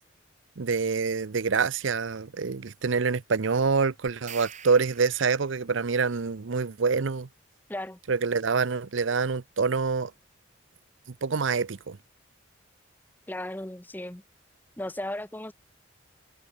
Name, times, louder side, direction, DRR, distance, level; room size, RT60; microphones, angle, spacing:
voice 1, 0.6-7.3 8.1-10.1 11.2-12.0, right 5 dB, 70° right, 0.6 m, -26 dB
sound 1, 4.1-5.7, right 9 dB, 35° right, 1.5 m, -45 dB
voice 2, 13.3-14.2 14.8-15.5, left 1 dB, 10° left, 0.7 m, -35 dB
head